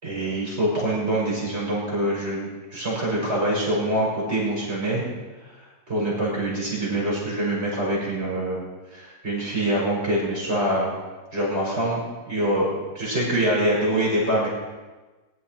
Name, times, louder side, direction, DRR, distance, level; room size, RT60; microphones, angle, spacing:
voice 1, 0.0-5.1 5.9-8.6 8.9-10.9 11.3-12.0 12.3-12.7 12.9-14.5, right 1 dB, 35° right, -5 dB, 5.6 m, -24 dB
21.0 x 11.0 x 4.5 m, 1.2 s
omnidirectional pair, 2.0 m